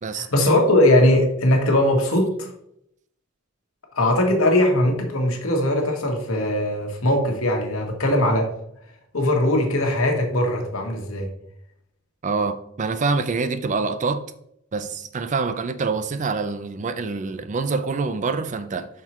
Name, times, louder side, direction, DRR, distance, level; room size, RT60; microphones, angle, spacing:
voice 1, 0.1-2.5 4.0-8.5 9.1-11.3, left 1 dB, 75° left, 1.5 m, -20 dB
voice 2, 12.2-14.2 14.7-18.9, right 4 dB, 35° right, 0.4 m, -25 dB
5.9 x 4.6 x 4.3 m
head